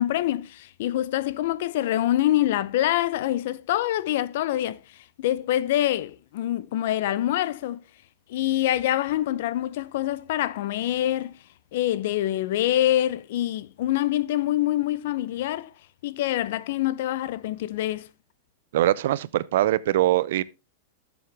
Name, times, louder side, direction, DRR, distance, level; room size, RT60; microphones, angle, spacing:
voice 1, 0.0-4.8 5.2-7.8 8.3-11.4 11.7-15.7 16.0-18.1, left 13 dB, 60° left, 0.5 m, -25 dB
voice 2, 18.7-20.4, right 14 dB, 65° right, 0.5 m, -22 dB
11.0 x 7.0 x 3.4 m
supercardioid pair, 160°, 0 cm